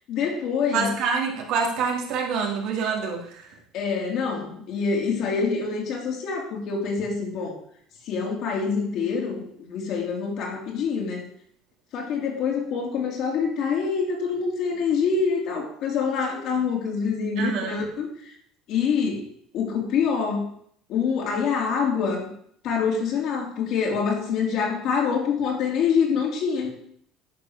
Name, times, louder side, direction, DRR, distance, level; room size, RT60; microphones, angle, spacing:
voice 1, 0.1-0.9 3.7-7.5 8.1-11.3 11.9-18.3 18.7-19.3 19.5-20.5 20.9-22.3 22.6-26.7, left 5 dB, 60° left, -1 dB, 3.5 m, -26 dB
voice 2, 0.7-3.6 17.4-17.8, right 5 dB, 65° right, 1 dB, 2.7 m, -26 dB
10.5 x 4.9 x 6.7 m, 0.65 s
supercardioid pair, 115°, 0 cm